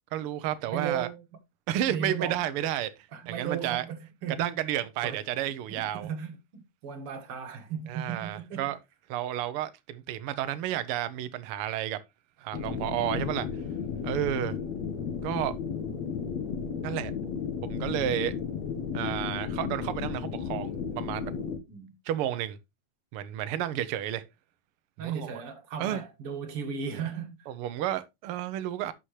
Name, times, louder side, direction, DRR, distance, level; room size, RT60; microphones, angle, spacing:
voice 1, 0.1-1.1 1.7-2.9 3.3-3.8 4.3-6.1 7.9-8.8 9.1-12.0 12.4-13.5 14.0-14.6 15.2-15.5 16.8-17.1 17.6-18.3 18.9-21.3 22.0-22.6 23.1-24.2 25.0-25.3 25.8-26.0 27.5-28.9, right 12 dB, 90° right, 1.2 m, -31 dB
voice 2, 0.7-1.2 1.9-2.5 3.1-4.6 5.0-5.2 5.7-8.7 12.8-13.0 21.7-22.0 25.0-27.5, right 7 dB, 50° right, 2.4 m, -36 dB
sound 1, 12.5-21.6, left 6 dB, 65° left, 2.4 m, -34 dB
11.5 x 6.8 x 3.1 m
omnidirectional pair, 3.5 m